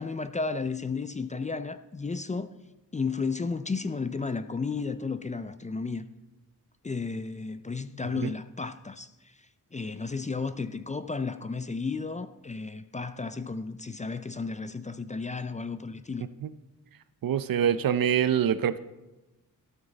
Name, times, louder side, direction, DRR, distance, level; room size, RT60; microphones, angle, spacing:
voice 1, 0.0-2.5 2.9-6.1 6.8-9.3 9.7-16.3, left 4 dB, 20° left, 0.3 m, -33 dB
voice 2, 17.2-18.8, right 9 dB, 75° right, 0.6 m, -25 dB
13.0 x 12.0 x 3.9 m
wide cardioid pair, 150°, 35 cm